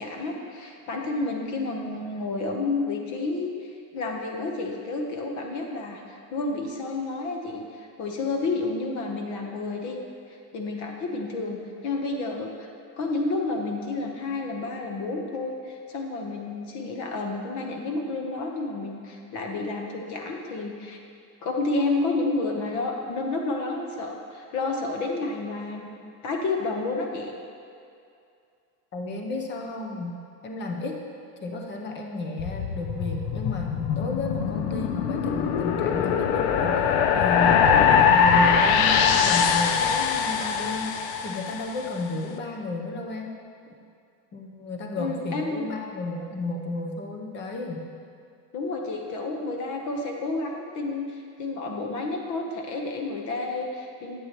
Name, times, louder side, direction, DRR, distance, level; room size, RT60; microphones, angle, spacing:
voice 1, 0.0-3.5 3.9-10.0 10.5-12.7 13.0-21.0 21.4-25.9 26.2-27.3 45.0-45.7 48.5-54.2, left 3 dB, 45° left, 1 dB, 1.1 m, -30 dB
voice 2, 28.9-30.2 30.4-31.0 31.4-43.3 44.3-47.9, left 2 dB, 25° left, 2 dB, 0.8 m, -33 dB
sound 1, 32.4-41.8, left 7 dB, 65° left, 0.7 m, -22 dB
11.0 x 8.2 x 3.0 m, 2.5 s
cardioid pair, 170°, 42 cm